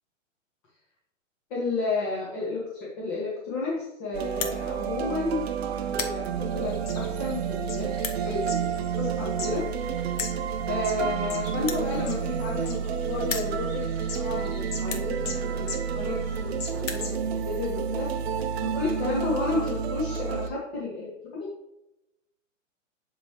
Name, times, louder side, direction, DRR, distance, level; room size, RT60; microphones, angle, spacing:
voice 1, 1.5-5.4 5.8-9.6 10.6-13.8 14.1-15.7 15.9-18.1 18.7-21.1 21.4-21.5, left 3 dB, 30° left, -6 dB, 2.0 m, -32 dB
sound 1, 4.1-20.5, right 7 dB, 55° right, 0.8 m, -30 dB
zippo open close, 4.3-4.6 5.3-5.5 5.8-6.2 6.9-7.0 7.9-8.2 9.3-9.4 9.6-9.7 10.1-10.4 11.6-12.9 13.2-13.5 14.2-14.3 14.8-15.1 16.0-16.1 16.3-16.4 16.7-17.1, left 6 dB, 85° left, 1.2 m, -34 dB
sound 2, 6.5-10.3 10.8-12.3 12.7-14.9 15.2-15.4 15.7-17.1, left 5 dB, 50° left, 1.5 m, -40 dB
11.5 x 3.9 x 3.2 m, 0.87 s
hypercardioid pair, 155°, 38 cm